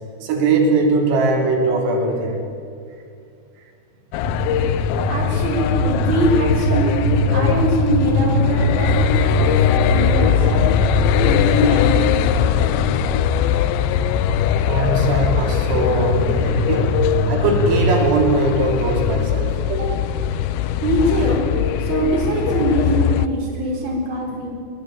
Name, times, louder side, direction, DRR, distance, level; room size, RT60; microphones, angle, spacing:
voice 1, 0.2-2.4 14.6-16.9 17.3-19.9, right 3 dB, 90° right, 1 dB, 6.2 m, -20 dB
sound 1, 4.1-23.3, left 10 dB, 80° left, 2.7 m, -21 dB
sound 2, 4.2-18.0, equal, 55° left, 2.5 m, -22 dB
voice 2, 5.1-7.0 7.3-10.7 11.2-12.6 20.8-21.4 21.8-24.5, right 1 dB, 25° right, -1 dB, 5.3 m, -23 dB
22.0 x 20.0 x 9.1 m, 2.4 s
omnidirectional pair, 5.8 m